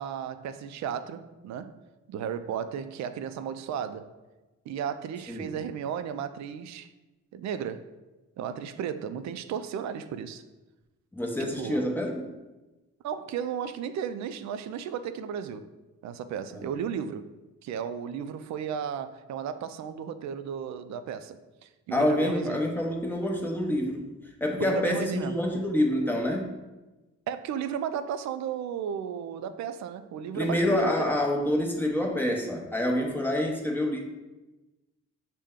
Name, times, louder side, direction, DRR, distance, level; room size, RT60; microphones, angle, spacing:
voice 1, 0.0-1.7 2.1-4.1 4.7-6.9 7.3-7.9 8.4-10.4 11.4-11.9 13.0-15.7 16.0-17.3 17.6-22.6 24.6-25.4 27.3-31.1, right 8 dB, 65° right, 11 dB, 0.4 m, -34 dB
voice 2, 11.1-12.2 16.5-16.7 21.9-24.0 24.4-26.5 30.3-34.0, left 1 dB, 5° left, 0 dB, 0.8 m, -27 dB
6.4 x 2.2 x 3.6 m, 1.1 s
cardioid pair, 90°, 30 cm